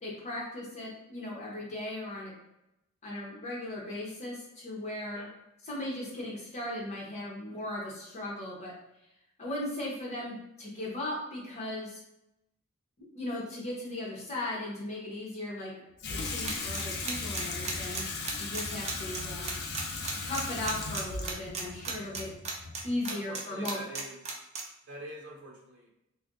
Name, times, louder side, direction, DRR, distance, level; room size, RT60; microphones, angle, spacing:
voice 1, 0.0-2.3 3.0-5.3 5.6-8.7 9.4-12.0 13.0-15.7 16.1-18.0 18.4-19.6 20.2-22.3 22.8-23.8, left 1 dB, 30° left, -5 dB, 0.9 m, -37 dB
Water tap faucet / Sink (filling or washing), 16.0-23.0, left 3 dB, 50° left, 0.4 m, -37 dB
sound 1, 16.4-23.4 23.6-24.6, right 5 dB, 30° right, 0.4 m, -34 dB
voice 2, 23.1-24.2 24.9-25.9, right 1 dB, 55° right, -1 dB, 0.8 m, -45 dB
2.5 x 2.2 x 3.7 m, 0.86 s
head